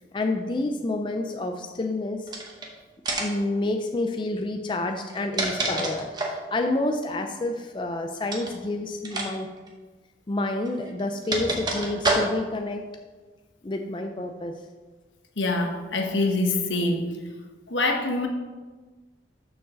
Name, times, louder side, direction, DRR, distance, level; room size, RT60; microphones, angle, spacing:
voice 1, 0.1-2.3 3.1-9.5 10.3-12.8 13.6-14.5, left 2 dB, 25° left, 4 dB, 0.4 m, -29 dB
sound 1, 2.3-2.7 3.1-3.5 5.0-6.5 8.3-8.6 9.0-9.3 9.6-9.7 10.7-12.6, right 2 dB, 20° right, 0.9 m, -28 dB
voice 2, 15.4-17.0 17.7-18.3, left 2 dB, 80° left, 3 dB, 1.1 m, -25 dB
6.5 x 4.6 x 6.3 m, 1.3 s
head